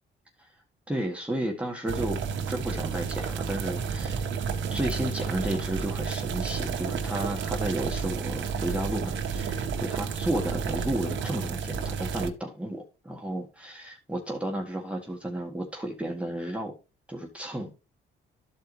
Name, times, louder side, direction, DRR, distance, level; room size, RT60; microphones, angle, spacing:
voice 1, 0.9-2.2 2.5-4.2 4.7-16.7 17.1-17.8, right 1 dB, 5° right, 1.7 m, -32 dB
sound 1, 1.9-12.3, right 6 dB, 70° right, 1.3 m, -31 dB
13.0 x 4.7 x 3.2 m
cardioid pair, 90°, 20 cm